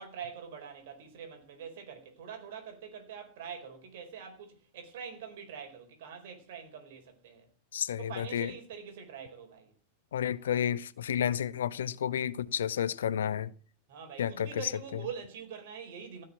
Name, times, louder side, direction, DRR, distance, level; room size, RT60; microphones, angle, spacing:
voice 1, 0.0-7.5 8.0-9.7 13.9-16.2, right 7 dB, 55° right, 4.3 m, -44 dB
voice 2, 7.7-8.5 10.1-13.5 14.2-15.0, left 9 dB, 65° left, 0.7 m, -31 dB
16.0 x 6.7 x 7.4 m
figure-of-eight pair, 90°, 0 cm